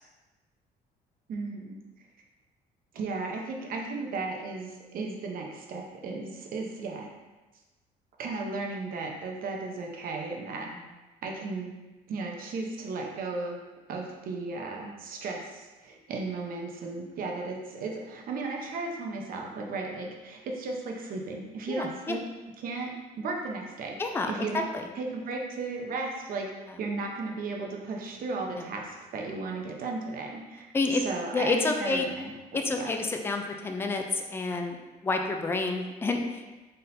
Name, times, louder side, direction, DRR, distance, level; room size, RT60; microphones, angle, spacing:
voice 1, 1.3-1.8 2.9-7.1 8.2-10.7 11.2-11.7 12.1-13.6 13.9-22.2 22.6-24.0 24.3-24.7 25.0-26.5 26.8-32.3 32.8-32.9, right 3 dB, 60° right, 0 dB, 0.8 m, -35 dB
voice 2, 21.7-22.2 24.0-24.9 28.5-28.7 30.7-31.0 31.3-32.0 32.5-34.8 35.0-36.5, left 3 dB, 15° left, 4 dB, 0.4 m, -29 dB
4.1 x 3.8 x 2.6 m, 1.2 s
cardioid pair, 110°, 17 cm